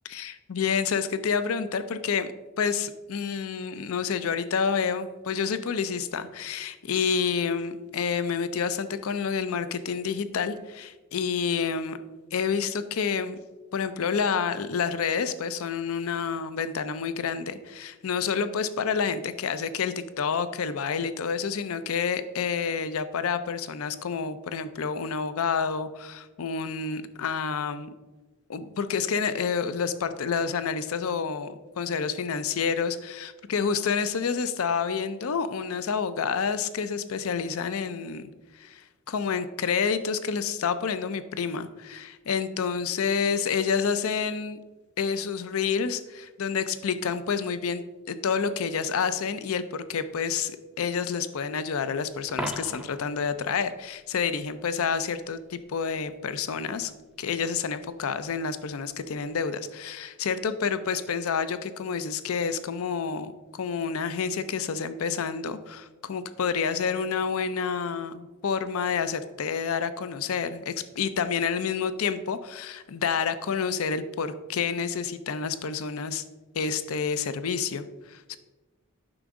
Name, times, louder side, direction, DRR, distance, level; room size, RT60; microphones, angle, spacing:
voice 1, 0.1-2.3 2.6-12.0 12.3-13.4 13.7-27.9 28.5-44.6 45.0-47.8 48.1-50.5 50.8-56.9 57.2-76.2 76.5-78.4, left 6 dB, 90° left, 12 dB, 0.5 m, -29 dB
Coin (dropping), 52.3-53.1 59.2-59.4, right 1 dB, 5° right, 0.5 m, -35 dB
8.8 x 5.9 x 3.7 m, 1.2 s
head